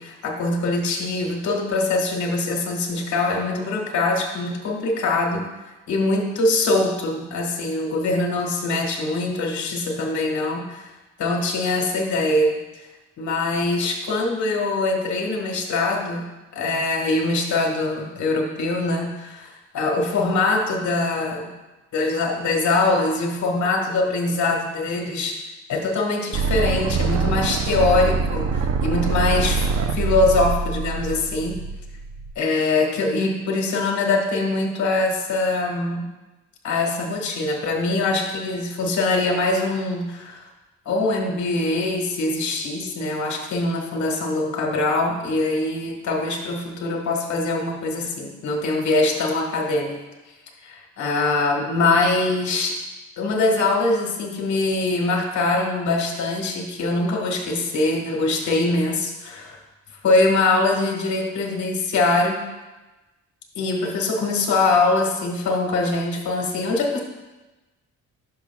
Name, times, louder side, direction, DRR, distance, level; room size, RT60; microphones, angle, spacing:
voice 1, 0.0-5.5 5.9-10.9 11.2-12.6 13.2-16.2 16.5-21.5 21.9-25.4 25.7-29.7 29.9-31.6 32.3-36.1 36.6-40.4 40.8-50.0 50.6-52.8 53.2-59.6 60.0-62.4 63.5-67.0, left 2 dB, 70° left, 1 dB, 1.5 m, -23 dB
sound 1, 26.3-32.3, right 4 dB, 65° right, 0.6 m, -24 dB
11.5 x 5.8 x 2.3 m, 1.1 s
cardioid pair, 90°, 30 cm